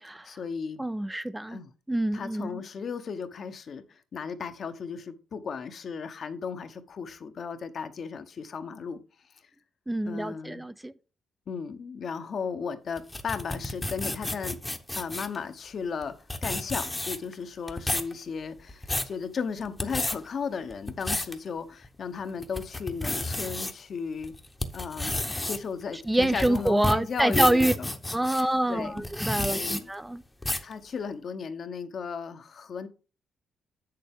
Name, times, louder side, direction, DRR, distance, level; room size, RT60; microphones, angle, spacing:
voice 1, 0.2-0.8 1.5-1.7 2.1-3.8 4.1-9.0 10.0-10.7 11.5-14.6 14.9-24.3 24.7-27.9 28.4-29.1 29.5-29.9 30.6-32.9, left 6 dB, 55° left, 0.9 m, -35 dB
voice 2, 0.8-1.6 1.9-2.6 9.9-10.9 26.1-27.7 28.1-30.2, right 1 dB, 10° right, 0.4 m, -26 dB
sound 1, 13.0-15.4 16.0-16.1 16.3-17.3 17.7-18.1 18.6-19.1 19.7-20.2 20.7-21.3 21.8-21.9 22.4-23.7 24.2-28.4 29.0-29.8 30.4-30.7, left 1 dB, 15° left, 0.9 m, -31 dB
7.6 x 6.7 x 3.6 m
cardioid pair, 95°, 0 cm